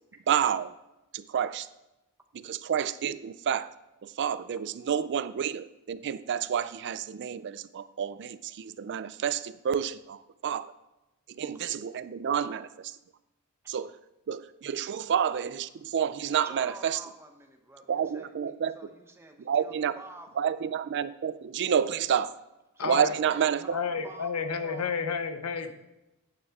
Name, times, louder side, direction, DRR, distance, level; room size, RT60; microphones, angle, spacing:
voice 1, 0.3-0.7 1.1-1.7 2.3-3.7 4.0-10.7 11.3-13.0 13.7-13.9 14.3-17.0 17.9-18.8 19.4-19.9 20.4-22.3 22.8-23.6, right 8 dB, 55° right, 15 dB, 0.4 m, -29 dB
voice 2, 16.4-20.4 22.7-24.9, right 2 dB, 10° right, 4 dB, 1.0 m, -48 dB
voice 3, 22.8-23.2 23.7-25.7, left 5 dB, 80° left, 9 dB, 0.9 m, -31 dB
9.8 x 8.8 x 3.6 m, 0.95 s
head